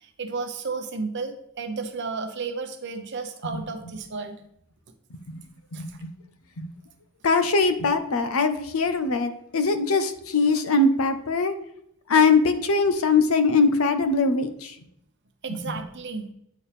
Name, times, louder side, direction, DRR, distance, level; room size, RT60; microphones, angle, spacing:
voice 1, 0.0-4.4 5.7-5.9 15.4-16.3, right 4 dB, 60° right, 6 dB, 0.8 m, -33 dB
voice 2, 5.7-6.1 6.6-6.7 7.2-11.5 12.1-14.7 15.5-15.6, left 4 dB, 85° left, 10 dB, 0.7 m, -22 dB
8.5 x 4.4 x 3.3 m, 0.75 s
head